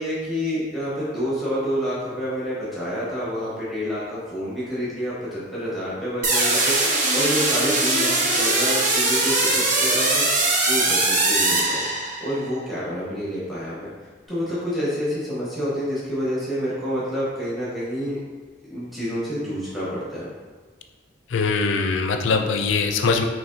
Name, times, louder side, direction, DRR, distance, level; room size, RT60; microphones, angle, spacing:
voice 1, 0.0-10.3 10.7-11.9 12.2-13.9 14.3-18.2 18.7-20.3, equal, ahead, -10 dB, 1.2 m, -28 dB
sound 1, 6.2-12.4, right 2 dB, 40° right, 0.7 m, -21 dB
voice 2, 21.3-23.2, left 4 dB, 75° left, 5 dB, 0.4 m, -22 dB
6.0 x 3.1 x 2.7 m, 1.5 s
head